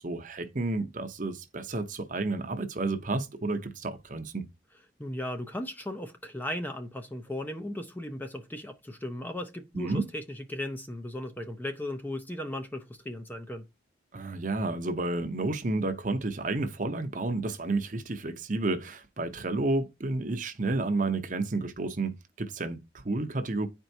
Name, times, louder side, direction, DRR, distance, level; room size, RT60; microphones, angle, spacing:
voice 1, 0.0-4.5 9.7-10.0 14.1-23.7, right 2 dB, 45° right, 0.8 m, -31 dB
voice 2, 5.0-13.6, left 1 dB, 10° left, 0.6 m, -36 dB
10.0 x 4.5 x 2.7 m
head